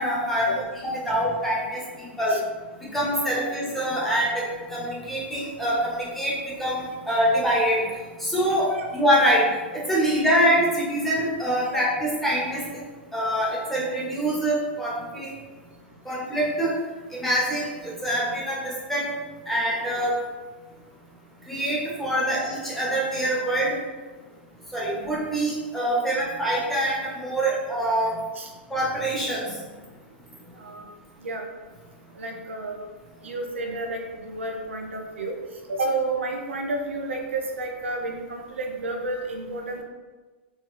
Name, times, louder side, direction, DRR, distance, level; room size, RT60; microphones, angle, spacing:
voice 1, 0.0-1.8 2.2-2.4 2.8-4.4 4.7-7.8 8.2-9.5 9.7-12.8 13.1-15.3 16.0-16.8 17.1-19.1 19.5-20.1 21.5-23.7 24.7-28.1 28.7-29.6, equal, 5° left, -6 dB, 1.2 m, -25 dB
voice 2, 32.1-32.8 33.2-35.3 35.7-39.8, right 2 dB, 80° right, 2 dB, 0.6 m, -31 dB
4.0 x 2.3 x 3.2 m, 1.3 s
hypercardioid pair, 105°, 6 cm